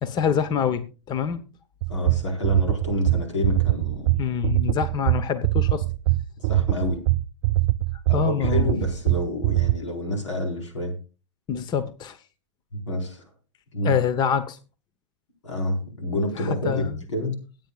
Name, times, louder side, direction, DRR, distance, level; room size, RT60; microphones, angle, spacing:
voice 1, 0.0-1.4 4.2-5.8 8.1-8.7 11.5-12.2 13.8-14.6 16.4-17.0, left 7 dB, 30° left, 13 dB, 1.0 m, -25 dB
sound 1, 1.8-9.8, right 18 dB, 55° right, 0.5 m, -22 dB
voice 2, 1.9-4.2 6.4-7.0 8.1-10.9 12.7-13.2 13.7-13.9 15.4-17.3, left 1 dB, 90° left, 2 dB, 4.6 m, -28 dB
22.5 x 9.1 x 2.4 m, 0.33 s
hypercardioid pair, 115°, 15 cm